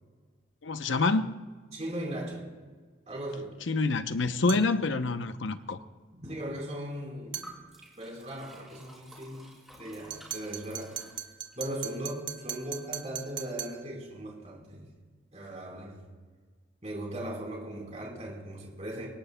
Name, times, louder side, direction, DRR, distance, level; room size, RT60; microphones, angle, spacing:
voice 1, 0.6-1.4 3.7-5.8, left 3 dB, 90° left, 0.7 m, -27 dB
voice 2, 1.7-2.5 3.1-3.6 6.1-7.6 8.0-10.9 11.6-14.9 15.3-16.0 16.8-19.1, right 1 dB, 35° right, 4.2 m, -38 dB
sound 1, 4.5-4.7 7.3-7.5 10.1-13.8, right 10 dB, 85° right, 1.6 m, -39 dB
Liquid, 7.4-11.6, right 1 dB, ahead, 4.0 m, -52 dB
23.5 x 18.5 x 2.2 m
head